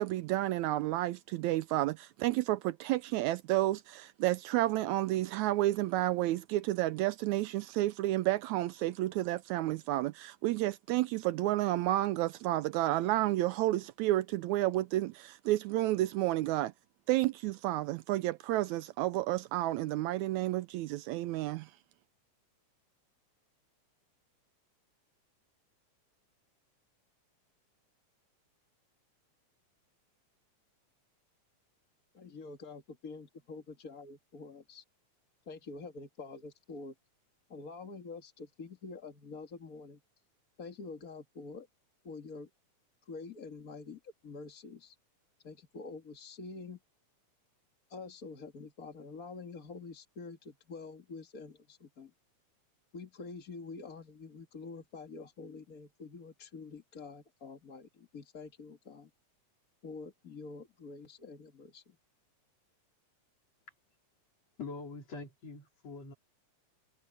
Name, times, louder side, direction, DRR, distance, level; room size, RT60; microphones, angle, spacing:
voice 1, 0.0-16.7 17.1-21.7, right 16 dB, 80° right, 1.8 m, -31 dB
voice 2, 32.1-34.8 35.5-36.9 37.5-40.0 40.6-41.7 42.0-42.5 43.1-45.0 45.4-46.8 47.9-52.1 52.9-59.1 59.8-62.0, left 4 dB, 35° left, 1.7 m, -47 dB
voice 3, 64.6-66.1, left 4 dB, 55° left, 4.8 m, -44 dB
omnidirectional pair, 3.5 m